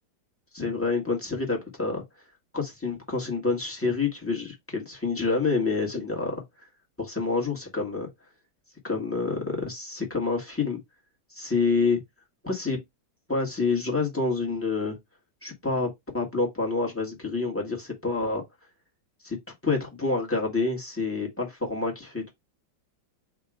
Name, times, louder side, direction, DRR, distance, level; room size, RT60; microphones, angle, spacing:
voice 1, 0.5-2.0 2.5-6.4 7.0-8.1 8.8-10.8 11.3-12.0 12.4-12.8 13.3-15.0 15.4-15.9 16.1-18.4 19.2-19.4 19.6-22.3, left 3 dB, 10° left, 1.3 m, -27 dB
3.8 x 2.7 x 4.8 m
omnidirectional pair, 2.1 m